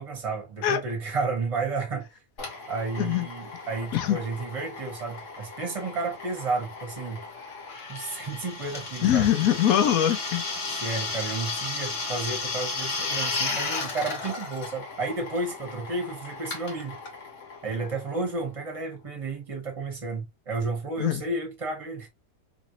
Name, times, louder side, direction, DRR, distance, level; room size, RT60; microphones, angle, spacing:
voice 1, 0.0-2.1 2.7-7.2 7.9-9.3 10.7-17.0 17.6-22.1, right 3 dB, 25° right, 1.0 m, -32 dB
Drill, 2.4-18.7, left 3 dB, 55° left, 1.3 m, -35 dB
voice 2, 9.0-10.4 21.0-21.2, left 11 dB, 70° left, 1.0 m, -22 dB
3.0 x 2.6 x 2.7 m
omnidirectional pair, 1.7 m